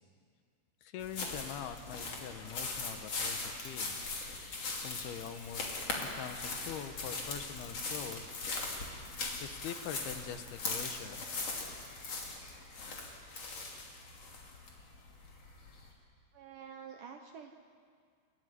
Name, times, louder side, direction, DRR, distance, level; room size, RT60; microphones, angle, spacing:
voice 1, 0.8-4.0 4.4-8.3 9.4-11.3, left 8 dB, 70° left, 9 dB, 2.7 m, -44 dB
sound 1, 1.0-15.9, left 3 dB, 40° left, 3.5 m, -40 dB
voice 2, 16.3-17.5, right 7 dB, 90° right, 4 dB, 1.8 m, -48 dB
29.0 x 14.5 x 9.7 m, 2.1 s
omnidirectional pair, 5.3 m